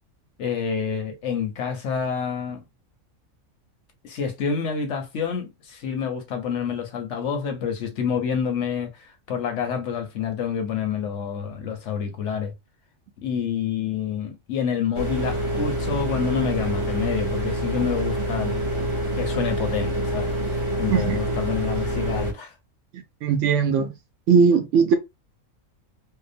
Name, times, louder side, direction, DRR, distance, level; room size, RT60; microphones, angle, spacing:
voice 1, 0.4-2.6 4.0-12.5 13.2-18.7 19.2-22.5, left 7 dB, 65° left, 0.9 m, -28 dB
sound 1, 14.9-22.3, right 1 dB, 30° right, 0.6 m, -26 dB
voice 2, 23.2-23.9 24.3-24.9, right 6 dB, 65° right, 0.9 m, -19 dB
2.8 x 2.1 x 2.5 m
omnidirectional pair, 1.4 m